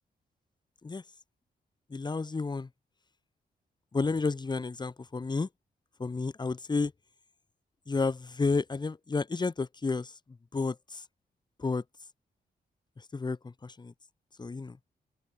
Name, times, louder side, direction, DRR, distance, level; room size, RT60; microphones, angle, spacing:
voice 1, 1.9-2.7 3.9-5.5 6.0-6.9 7.9-10.1 10.5-11.0 11.6-11.8 13.1-13.9 14.4-14.8, left 4 dB, 25° left, 1.2 m, -31 dB
open air
cardioid pair, 95°, 16 cm